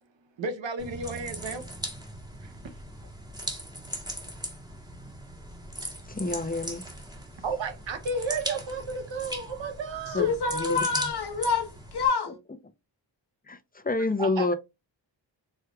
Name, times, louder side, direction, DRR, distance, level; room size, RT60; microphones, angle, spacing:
voice 1, 0.4-1.7 2.4-2.7 7.4-10.3 14.0-14.5, right 4 dB, 80° right, 1.0 m, -33 dB
sound 1, 0.8-12.1, right 1 dB, 10° right, 1.5 m, -39 dB
voice 2, 6.1-6.9 10.1-10.3 10.5-10.8 13.5-14.5, left 3 dB, 20° left, 0.8 m, -28 dB
voice 3, 10.1-12.4, left 5 dB, 60° left, 1.3 m, -27 dB
4.5 x 3.2 x 2.4 m
cardioid pair, 60°, 45 cm